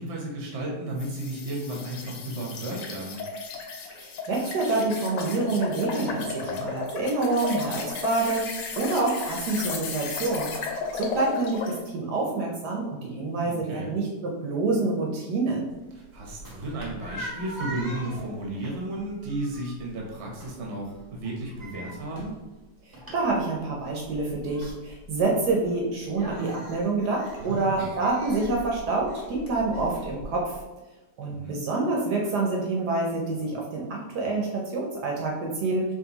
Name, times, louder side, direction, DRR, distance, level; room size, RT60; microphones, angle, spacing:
voice 1, 0.0-3.2 6.3-6.7 13.3-13.9 16.1-22.4 27.4-27.9 31.2-31.6, right 1 dB, 50° right, -1 dB, 1.0 m, -34 dB
sound 1, 1.0-11.8, left 5 dB, 80° left, 1.3 m, -35 dB
voice 2, 3.9-15.7 23.1-30.6 31.2-35.9, right 3 dB, 70° right, -1 dB, 1.2 m, -27 dB
sound 2, 15.7-30.6, equal, 15° right, 0.8 m, -43 dB
4.5 x 3.2 x 2.9 m, 1.1 s
omnidirectional pair, 1.9 m